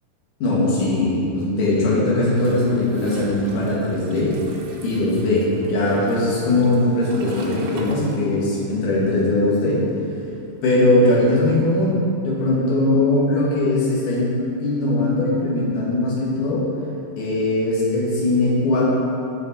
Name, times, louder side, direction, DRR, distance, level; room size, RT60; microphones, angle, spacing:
voice 1, 0.4-4.3 4.8-9.8 10.6-16.6 17.2-18.9, left 2 dB, 60° left, -6 dB, 2.8 m, -20 dB
Toilet flush, 2.3-8.7 9.0-10.6, right 2 dB, 85° right, 2.9 m, -39 dB
7.2 x 7.0 x 4.1 m, 2.7 s
omnidirectional pair, 4.7 m